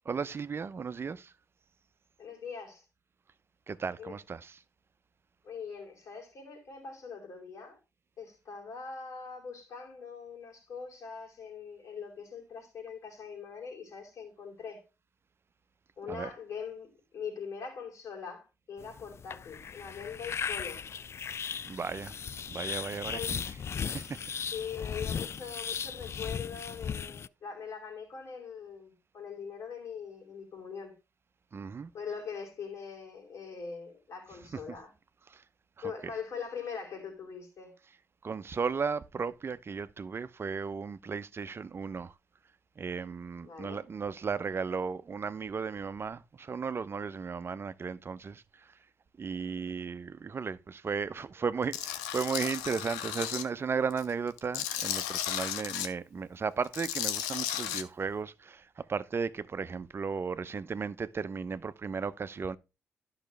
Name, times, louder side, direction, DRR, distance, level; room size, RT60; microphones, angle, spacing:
voice 1, 0.1-1.3 3.7-4.6 16.1-16.3 21.7-22.1 22.5-23.4 23.8-24.2 31.5-31.9 35.3-35.4 38.2-42.1 42.8-48.4 49.2-62.6, right 5 dB, 45° right, 0.6 m, -35 dB
voice 2, 2.2-2.8 4.0-4.2 5.4-7.8 8.2-14.8 16.0-20.8 23.1-23.4 23.9-30.9 31.9-34.9 35.8-37.7 43.4-43.8, left 6 dB, 65° left, 4.4 m, -42 dB
sound 1, 18.8-27.3, left 7 dB, 50° left, 0.4 m, -37 dB
Tools, 51.7-53.4 53.9-55.9 56.6-57.8, left 11 dB, 85° left, 0.7 m, -34 dB
12.0 x 5.7 x 3.3 m
hypercardioid pair, 40°, 6 cm